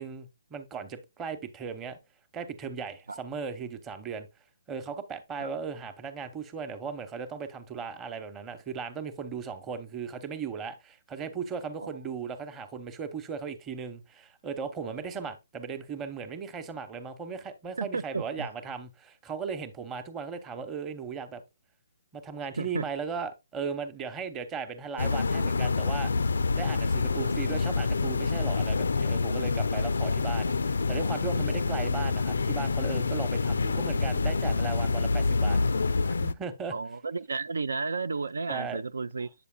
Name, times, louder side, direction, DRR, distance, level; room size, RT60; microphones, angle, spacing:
voice 1, 0.0-2.0 2.3-4.3 4.7-21.4 22.1-26.1 26.5-35.6 36.0-36.7 38.5-38.8, right 6 dB, 15° right, 0.9 m, -37 dB
voice 2, 17.8-18.5 22.6-22.8 27.1-27.4 30.1-30.2 30.5-30.6 36.7-39.3, right 4 dB, 85° right, 0.4 m, -33 dB
sound 1, 25.0-36.3, left 4 dB, 80° left, 0.4 m, -27 dB
8.3 x 6.7 x 2.2 m
hypercardioid pair, 150°, 0 cm